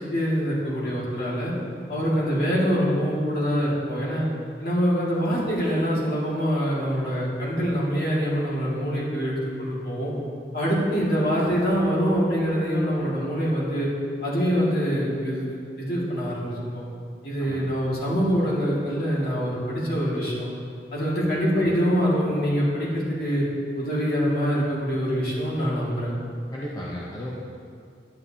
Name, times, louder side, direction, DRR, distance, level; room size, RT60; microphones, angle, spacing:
voice 1, 0.1-1.5 1.9-4.3 4.6-10.1 10.5-13.9 14.2-16.8 17.2-20.5 20.9-23.5 23.8-26.1, equal, 55° left, -7 dB, 2.2 m, -24 dB
voice 2, 17.4-17.7 21.2-21.3 26.5-27.3, equal, 20° left, -5 dB, 0.7 m, -35 dB
10.0 x 9.3 x 2.8 m, 2.3 s
head